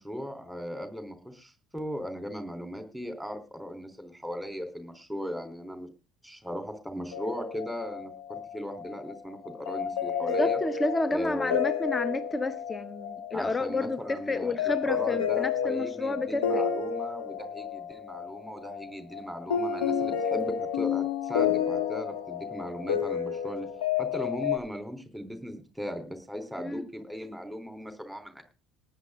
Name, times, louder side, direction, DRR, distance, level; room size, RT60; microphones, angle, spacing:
voice 1, 0.0-5.9 6.2-10.6 11.1-11.6 13.3-23.7 24.0-28.4, equal, ahead, 7 dB, 4.0 m, -38 dB
sound 1, 7.1-24.6, left 8 dB, 70° left, 3.1 m, -31 dB
voice 2, 10.2-16.7 26.6-26.8, left 2 dB, 20° left, 14 dB, 1.2 m, -30 dB
19.0 x 10.0 x 3.8 m, 0.30 s
figure-of-eight pair, 60°, 0 cm